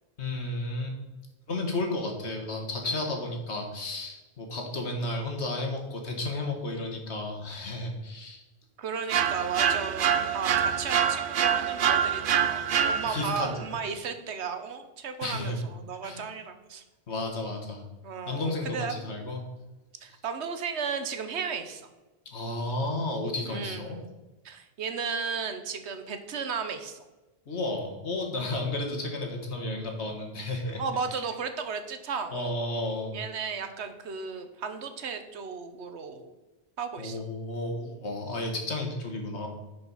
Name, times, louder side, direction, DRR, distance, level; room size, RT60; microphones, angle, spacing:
voice 1, 0.2-1.0 1.5-8.4 13.0-13.5 13.8-13.9 15.2-15.6 16.0-16.2 17.1-17.8 18.3-19.4 22.3-24.0 27.5-30.8 31.1-31.2 32.3-33.1 37.0-39.5, left 2 dB, 80° left, 3 dB, 1.8 m, -32 dB
voice 2, 8.8-16.8 18.0-19.1 20.0-21.9 23.5-24.1 24.4-27.0 30.8-32.6 33.1-36.3 36.8-37.2, right 5 dB, 80° right, 8 dB, 1.2 m, -34 dB
sound 1, 9.1-13.4, right 8 dB, 60° right, 0.7 m, -26 dB
10.5 x 5.3 x 4.1 m, 1.1 s
omnidirectional pair, 1.1 m